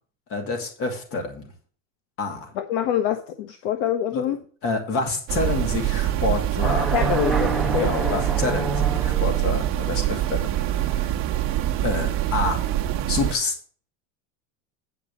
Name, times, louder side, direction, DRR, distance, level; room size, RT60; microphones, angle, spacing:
voice 1, 0.3-1.5 2.2-2.5 4.1-4.2 4.6-6.9 7.8-11.1 11.8-12.6 13.1-13.5, left 3 dB, 35° left, 4 dB, 2.5 m, -28 dB
voice 2, 2.5-4.4 6.9-8.2, left 10 dB, 60° left, 8 dB, 1.0 m, -25 dB
sound 1, 5.3-13.3, right 13 dB, 35° right, 1.0 m, -24 dB
sound 2, 6.6-9.5, right 2 dB, ahead, 0.4 m, -28 dB
8.9 x 5.4 x 7.1 m, 0.43 s
cardioid pair, 175°, 37 cm